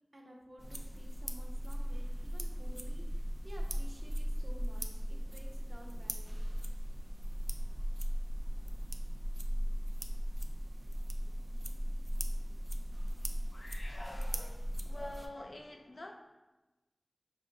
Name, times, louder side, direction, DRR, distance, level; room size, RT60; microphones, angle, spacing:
voice 1, 0.1-6.5, equal, 60° right, -1 dB, 0.8 m, -54 dB
sound 1, 0.6-15.3, equal, 35° right, 0.4 m, -37 dB
voice 2, 13.5-16.1, left 1 dB, 70° left, 2 dB, 0.5 m, -47 dB
5.3 x 2.5 x 3.8 m, 1.1 s
wide cardioid pair, 40°, 0 cm